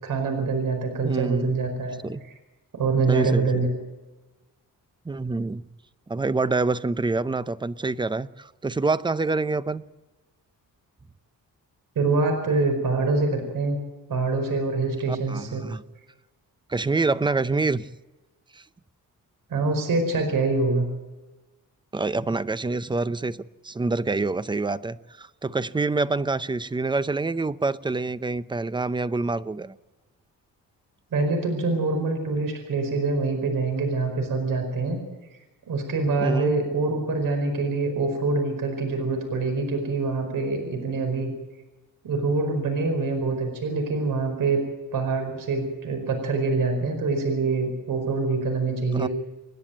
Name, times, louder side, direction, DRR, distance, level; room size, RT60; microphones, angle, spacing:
voice 1, 0.0-2.0 2.7-3.7 11.9-13.8 14.1-15.6 19.5-20.9 31.1-35.0 35.7-41.3 42.0-44.6 44.9-49.1, right 3 dB, 70° right, 5.0 m, -25 dB
voice 2, 1.0-1.5 2.0-2.2 3.1-3.6 5.1-5.6 6.1-9.8 15.1-15.8 16.7-17.9 18.5-18.6 21.9-29.8 36.2-36.5 48.9-49.1, right 3 dB, 15° right, 0.6 m, -26 dB
28.0 x 10.5 x 9.1 m
cardioid pair, 125°, 34 cm